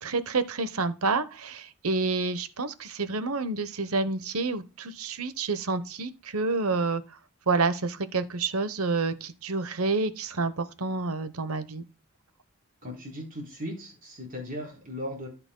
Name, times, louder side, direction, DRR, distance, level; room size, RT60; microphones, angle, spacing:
voice 1, 0.0-7.0 7.5-11.8, right 3 dB, 75° right, 1.0 m, -28 dB
voice 2, 12.8-15.3, equal, 40° right, 3.9 m, -37 dB
14.0 x 5.9 x 2.2 m
head